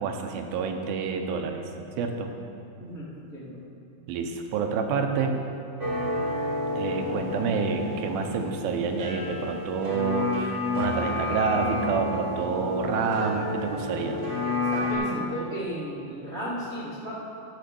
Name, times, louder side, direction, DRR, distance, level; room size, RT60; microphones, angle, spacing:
voice 1, 0.0-1.7 2.0-2.3 4.1-5.4 6.8-14.2, right 5 dB, 80° right, 4 dB, 2.6 m, -28 dB
voice 2, 2.8-3.6 14.7-17.1, equal, 50° right, -9 dB, 0.7 m, -35 dB
sound 1, 5.8-14.9, left 2 dB, 35° right, 1.1 m, -30 dB
12.5 x 5.4 x 7.0 m, 2.6 s
omnidirectional pair, 4.3 m